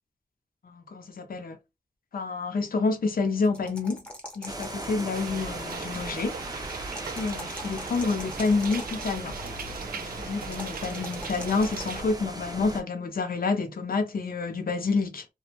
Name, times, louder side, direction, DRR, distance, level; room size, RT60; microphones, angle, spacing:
voice 1, 0.6-1.6 2.1-4.0 4.4-6.4 7.1-9.4 9.8-15.3, left 4 dB, 75° left, 0.6 m, -28 dB
sound 1, 3.4-5.3 6.8-9.1 10.5-12.0, left 1 dB, 5° left, 0.8 m, -43 dB
sound 2, 4.5-12.8, right 2 dB, 25° right, 0.6 m, -39 dB
sound 3, 5.1-12.0, right 5 dB, 75° right, 0.4 m, -39 dB
2.2 x 2.1 x 2.9 m
wide cardioid pair, 75°, 15 cm